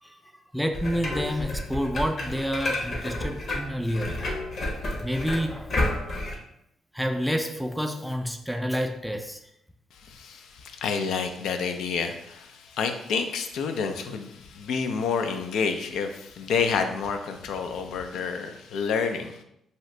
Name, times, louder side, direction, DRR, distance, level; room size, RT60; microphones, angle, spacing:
voice 1, 0.0-4.2 5.0-5.7 6.9-9.4, equal, ahead, 5 dB, 0.3 m, -29 dB
sound 1, 0.7-6.3, left 2 dB, 50° left, 0.8 m, -30 dB
voice 2, 9.9-19.4, left 5 dB, 80° left, 6 dB, 0.3 m, -29 dB
2.7 x 2.5 x 3.1 m, 0.77 s
cardioid pair, 90°, 0 cm